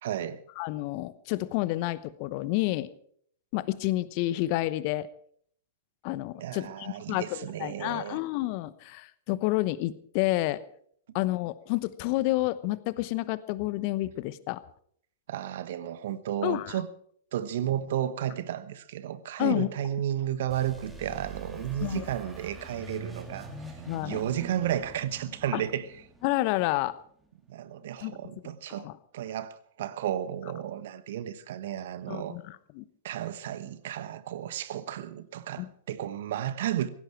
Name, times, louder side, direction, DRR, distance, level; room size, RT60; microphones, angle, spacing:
voice 1, 0.0-0.4 6.4-8.2 15.3-16.9 17.3-23.5 24.0-25.9 27.5-28.9 29.1-32.4 33.0-36.9, right 11 dB, 55° right, 1.1 m, -33 dB
voice 2, 0.6-2.9 3.5-5.1 6.0-10.6 11.1-14.6 16.4-16.8 19.4-19.7 21.8-22.1 23.9-24.2 25.5-25.6 26.2-26.9 28.0-28.2 28.4-28.5 28.8-28.9 32.1-32.8 35.6-35.7, left 17 dB, 45° left, 1.0 m, -29 dB
sound 1, 20.5-27.1, right 2 dB, 5° right, 2.9 m, -45 dB
17.5 x 16.0 x 4.7 m
figure-of-eight pair, 100°, 0 cm